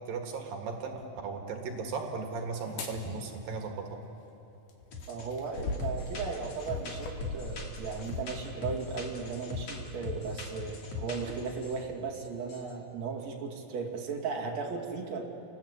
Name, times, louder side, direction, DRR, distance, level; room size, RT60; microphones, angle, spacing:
voice 1, 0.1-4.0, right 4 dB, 75° right, 3 dB, 3.5 m, -36 dB
sound 1, 2.6-3.0 4.7-8.2 8.9-9.0, left 3 dB, 85° left, 3.8 m, -40 dB
sound 2, 4.9-5.3 5.5-11.8 12.1-12.7, left 4 dB, 50° left, 3.4 m, -40 dB
voice 2, 5.1-15.2, right 5 dB, 50° right, -1 dB, 3.4 m, -36 dB
30.0 x 19.5 x 8.4 m, 2.9 s
omnidirectional pair, 4.1 m